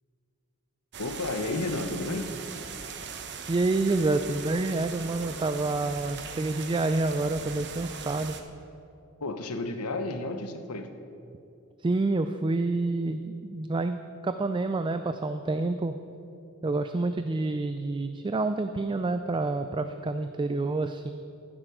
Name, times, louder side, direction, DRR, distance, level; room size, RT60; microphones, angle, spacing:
sound 1, 0.9-8.4, right 6 dB, 55° right, 0.9 m, -40 dB
voice 1, 1.0-2.3 9.2-10.9, left 2 dB, 80° left, 7 dB, 1.0 m, -32 dB
voice 2, 3.5-8.4 11.8-14.0 14.2-15.9 16.6-21.1, right 2 dB, 20° right, 9 dB, 0.3 m, -28 dB
14.5 x 7.7 x 6.3 m, 2.7 s
head